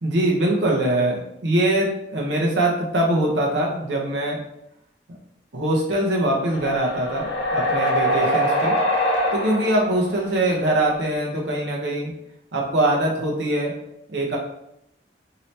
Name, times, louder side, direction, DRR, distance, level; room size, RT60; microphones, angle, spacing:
voice 1, 0.0-4.4 5.5-8.7 9.3-12.1 12.5-13.7 14.1-14.4, right 1 dB, 80° right, -2 dB, 0.8 m, -22 dB
sound 1, 6.5-10.1 11.1-11.2, equal, 85° left, 0.8 m, -23 dB
2.8 x 2.8 x 3.2 m, 0.80 s
head